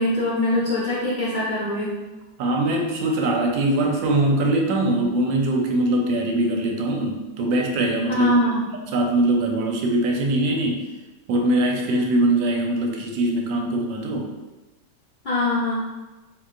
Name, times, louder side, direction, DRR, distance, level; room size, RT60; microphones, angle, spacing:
voice 1, 0.0-1.9 8.1-8.7 15.2-15.8, left 2 dB, 55° left, -10 dB, 0.5 m, -23 dB
voice 2, 2.4-8.4 8.7-10.8 11.3-14.3, right 1 dB, 80° right, 1 dB, 1.3 m, -22 dB
3.8 x 3.0 x 2.4 m, 1.1 s
omnidirectional pair, 2.1 m